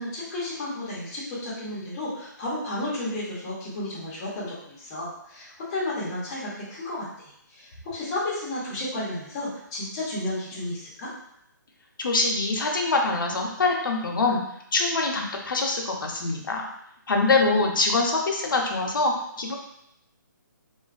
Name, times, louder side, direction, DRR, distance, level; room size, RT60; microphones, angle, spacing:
voice 1, 0.0-11.1, left 1 dB, 15° left, -8 dB, 0.6 m, -32 dB
voice 2, 12.0-14.4 14.7-16.6 17.1-19.5, left 3 dB, 90° left, 1 dB, 0.5 m, -24 dB
2.5 x 2.2 x 2.3 m, 0.75 s
hypercardioid pair, 170°, 11 cm